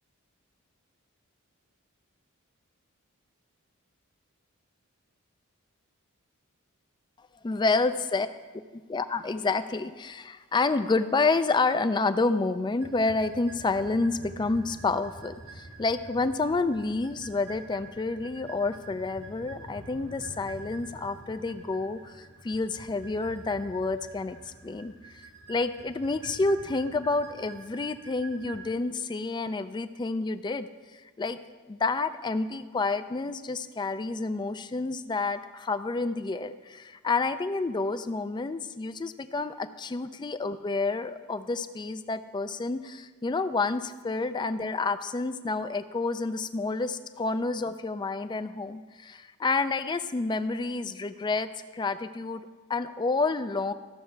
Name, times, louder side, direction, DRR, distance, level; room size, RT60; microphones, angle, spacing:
voice 1, 7.4-8.3 8.7-24.4 24.6-24.9 25.5-30.7 31.2-31.4 31.7-53.7, left 3 dB, 20° left, 11 dB, 0.3 m, -29 dB
sound 1, 12.8-28.7, right 2 dB, 85° right, 2.4 m, -47 dB
14.0 x 6.5 x 4.6 m, 1.4 s
head